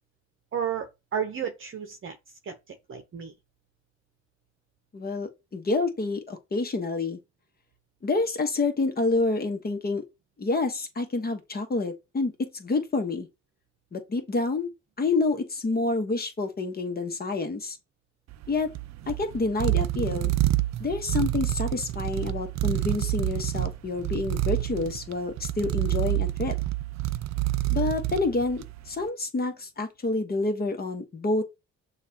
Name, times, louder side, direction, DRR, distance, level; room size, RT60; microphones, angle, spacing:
voice 1, 0.5-2.2 2.4-3.3, right 8 dB, 45° right, 0.8 m, -33 dB
voice 2, 4.9-7.2 8.0-10.0 10.4-13.3 13.9-14.7 15.0-17.8 18.5-18.7 19.1-20.3 20.8-26.5 27.7-31.4, left 3 dB, 30° left, 1.1 m, -28 dB
sound 1, 18.3-28.9, right 16 dB, 65° right, 0.4 m, -28 dB
6.4 x 2.5 x 2.8 m
cardioid pair, 90°, 30 cm